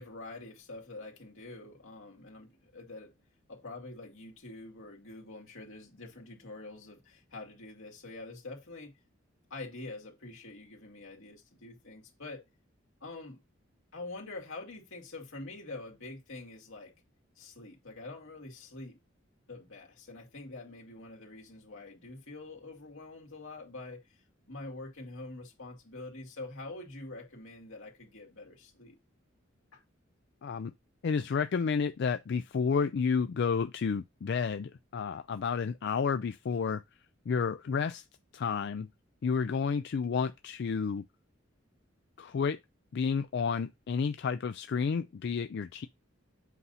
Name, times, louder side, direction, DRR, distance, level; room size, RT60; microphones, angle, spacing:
voice 1, 0.0-3.1 3.5-8.9 9.5-12.4 13.0-13.4 13.9-16.9 17.4-19.0 19.5-24.0 24.5-29.0 29.7-29.8, left 2 dB, 85° left, 2.3 m, -45 dB
voice 2, 30.4-30.7 31.0-36.8 37.3-38.0 38.3-38.9 39.2-41.0 42.2-42.6 42.9-45.9, left 5 dB, 60° left, 0.4 m, -31 dB
8.2 x 2.8 x 5.5 m
head